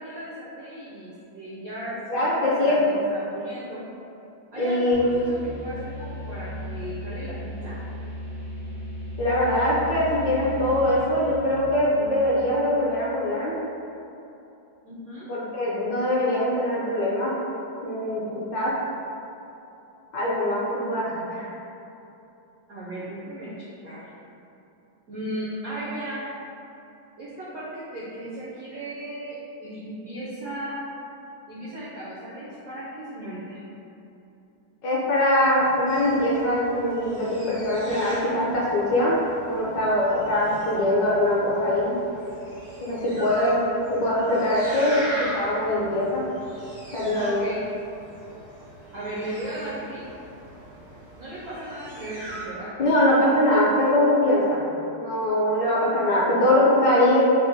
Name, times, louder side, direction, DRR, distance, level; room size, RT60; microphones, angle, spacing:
voice 1, 0.0-3.8 4.5-7.8 14.8-15.3 22.7-23.5 23.8-24.1 25.1-26.2 27.2-30.8 31.5-33.6 47.1-47.6 48.9-50.0 51.2-52.7, right 1 dB, 85° right, -8 dB, 0.8 m, -36 dB
voice 2, 2.1-2.8 4.6-5.2 9.2-13.6 15.3-17.3 17.8-18.7 20.1-21.5 34.8-39.2 39.4-41.9 42.8-43.6 43.9-46.3 46.9-47.4 52.8-54.6 55.0-57.2, left 1 dB, 65° left, -7 dB, 1.2 m, -22 dB
sound 1, 4.9-12.6, equal, 25° left, 0.3 m, -36 dB
sound 2, 35.9-52.5, equal, 45° left, 0.7 m, -40 dB
4.1 x 2.1 x 3.8 m, 2.9 s
omnidirectional pair, 2.4 m